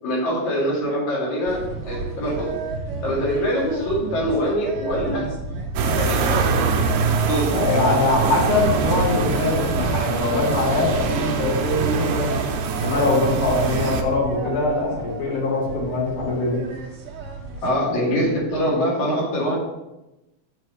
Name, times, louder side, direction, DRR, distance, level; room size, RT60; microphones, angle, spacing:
voice 1, 0.0-2.5 3.0-5.3 6.0-6.7 7.3-7.6 17.6-19.6, equal, 70° left, -5 dB, 3.7 m, -24 dB
sound 1, 1.4-17.7, right 4 dB, 55° right, 1.9 m, -32 dB
sound 2, 5.8-14.0, right 5 dB, 80° right, 2.1 m, -24 dB
voice 2, 7.5-12.4 12.8-16.6, left 2 dB, 90° left, -5 dB, 4.0 m, -22 dB
8.1 x 6.9 x 3.2 m, 0.97 s
omnidirectional pair, 3.4 m